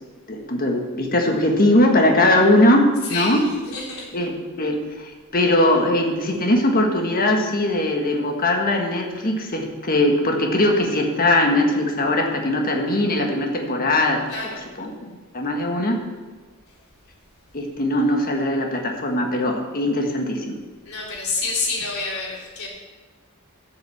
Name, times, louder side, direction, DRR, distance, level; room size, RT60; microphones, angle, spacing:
voice 1, 0.3-3.4 4.1-14.2 14.8-16.0 17.5-20.6, left 1 dB, 40° left, 2 dB, 1.6 m, -20 dB
voice 2, 3.0-4.0 14.3-14.6 20.8-22.7, left 3 dB, 75° left, -3 dB, 3.7 m, -28 dB
12.0 x 6.6 x 7.1 m, 1.3 s
head